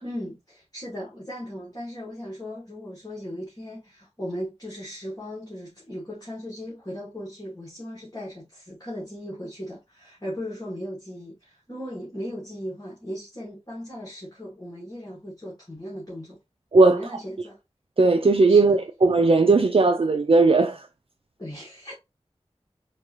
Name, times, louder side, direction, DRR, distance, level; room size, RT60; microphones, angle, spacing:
voice 1, 0.0-16.4 16.9-17.6 18.5-18.8 21.4-21.9, equal, 35° left, 2.0 m, -37 dB
voice 2, 18.0-20.9, right 3 dB, 55° right, 0.4 m, -17 dB
4.4 x 2.7 x 3.2 m
wide cardioid pair, 45°, 11 cm